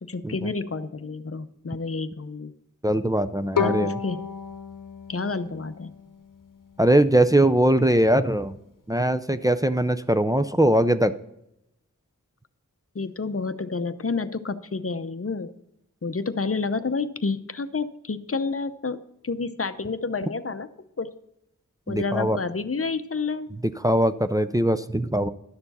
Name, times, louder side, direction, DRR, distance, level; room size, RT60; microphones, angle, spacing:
voice 1, 0.0-2.5 3.5-4.2 5.1-5.9 12.9-15.5 16.0-20.7 21.0-21.1 21.9-23.5, left 4 dB, 45° left, 12 dB, 0.7 m, -29 dB
voice 2, 2.8-4.0 6.8-8.6 8.9-11.1 21.9-22.4 23.6-25.3, right 1 dB, 10° right, 10 dB, 0.4 m, -21 dB
Bowed string instrument, 3.6-6.6, left 6 dB, 75° left, 0.8 m, -31 dB
11.5 x 6.8 x 4.1 m, 0.82 s
wide cardioid pair, 40°, 32 cm